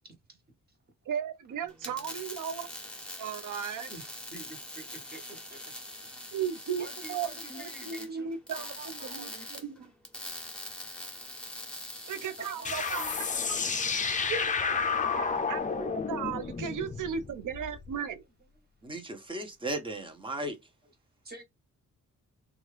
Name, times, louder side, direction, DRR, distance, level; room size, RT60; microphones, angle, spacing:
voice 1, 1.1-2.7 3.2-3.9 6.3-9.9 12.1-13.0 14.3-14.8 15.1-18.2, right 7 dB, 85° right, 0.6 m, -36 dB
sound 1, 1.7-13.2, left 1 dB, 5° left, 1.0 m, -43 dB
voice 2, 3.9-5.2 5.5-5.6 6.7-9.6 12.4-13.2 18.0-18.1 18.8-19.0 21.2-21.4, right 3 dB, 30° right, 1.2 m, -47 dB
sound 2, 12.6-17.9, left 5 dB, 25° left, 0.4 m, -31 dB
voice 3, 18.8-20.6, right 1 dB, 15° right, 0.8 m, -36 dB
2.9 x 2.4 x 3.2 m
wide cardioid pair, 120°, 30 cm